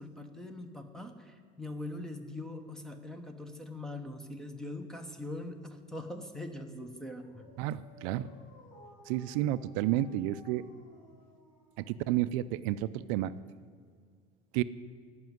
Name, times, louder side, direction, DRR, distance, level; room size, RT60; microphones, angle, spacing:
voice 1, 0.0-7.5, left 1 dB, 5° left, 7 dB, 0.8 m, -42 dB
Dog, 6.9-12.6, left 2 dB, 85° left, 3.5 m, -57 dB
voice 2, 7.6-8.3 9.1-10.6 11.8-13.3 14.5-14.6, right 14 dB, 70° right, 14 dB, 0.4 m, -31 dB
14.0 x 6.0 x 9.4 m, 2.1 s
cardioid pair, 160°, 18 cm